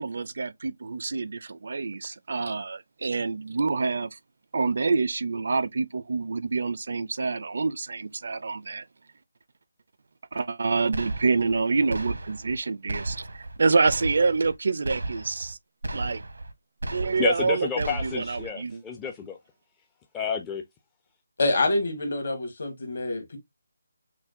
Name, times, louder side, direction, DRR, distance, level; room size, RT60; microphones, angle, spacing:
voice 1, 0.0-4.1 4.5-8.8 10.3-15.6 15.9-16.2 16.9-18.8, right 4 dB, 60° right, 0.4 m, -27 dB
sound 1, 10.9-11.6 11.9-12.6 12.9-13.6 13.9-14.6 14.8-15.5 15.8-16.5 16.8-17.5 17.8-18.5, right 2 dB, 90° right, 0.9 m, -34 dB
voice 2, 17.2-19.4 20.1-20.6, left 7 dB, 10° left, 0.4 m, -30 dB
voice 3, 21.4-23.4, left 2 dB, 60° left, 1.7 m, -26 dB
5.7 x 2.2 x 2.5 m
figure-of-eight pair, 165°, 0 cm